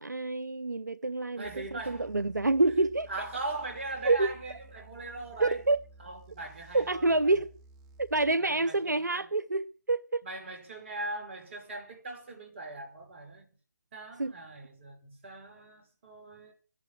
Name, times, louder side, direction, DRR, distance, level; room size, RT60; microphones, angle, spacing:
voice 1, 0.0-3.1 4.0-4.3 5.4-5.8 6.7-7.5 8.0-10.2 14.2-14.3, right 2 dB, 80° right, 0.7 m, -27 dB
sound 1, 1.4-8.3, right 2 dB, 20° right, 1.0 m, -54 dB
voice 2, 1.4-2.1 3.1-5.6 6.0-7.3 8.4-9.3 10.2-13.5 13.9-16.5, right 2 dB, 40° right, 5.8 m, -40 dB
13.5 x 11.0 x 8.2 m
figure-of-eight pair, 145°, 9 cm